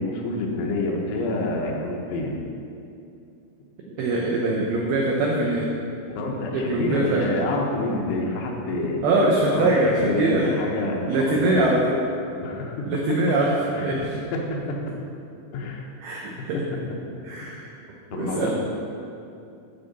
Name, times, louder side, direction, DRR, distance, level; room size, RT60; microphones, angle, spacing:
voice 1, 0.0-2.3 6.1-9.1 9.4-9.7 10.0-11.7 12.4-12.9 13.7-14.5 15.5-15.9 16.5-16.6 17.4-17.6 18.1-18.5, left 2 dB, 80° left, 0 dB, 3.3 m, -28 dB
voice 2, 4.0-5.7 6.5-7.3 9.0-10.5 11.1-12.0 12.9-13.5 13.8-14.0 16.0-16.6 17.2-17.7 18.1-18.5, right 2 dB, 90° right, -2 dB, 2.2 m, -22 dB
13.0 x 5.3 x 4.1 m, 2.6 s
omnidirectional pair, 5.5 m